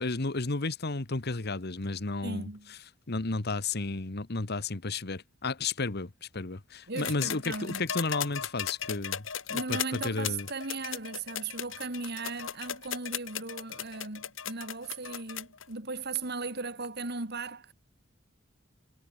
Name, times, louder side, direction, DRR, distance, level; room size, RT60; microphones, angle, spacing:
voice 1, 0.0-2.5 3.1-10.5, left 3 dB, 55° left, 1.4 m, -33 dB
voice 2, 2.2-2.7 6.9-7.8 9.5-17.7, right 3 dB, 55° right, 3.2 m, -37 dB
sound 1, 7.0-15.6 16.8-16.9, left 9 dB, 75° left, 2.3 m, -36 dB
head